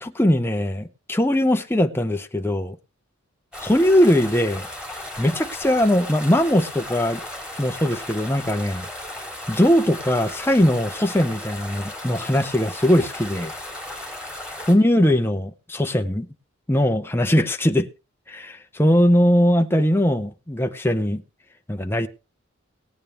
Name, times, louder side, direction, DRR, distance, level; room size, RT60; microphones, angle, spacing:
voice 1, 0.0-2.8 3.6-4.7 5.2-7.2 7.6-8.9 9.5-13.5 14.7-16.3 16.7-17.9 18.3-21.2 21.7-22.1, equal, 10° left, 0.7 m, -20 dB
sound 1, 3.5-14.7, left 1 dB, 5° right, 2.6 m, -35 dB
18.5 x 8.9 x 3.3 m
head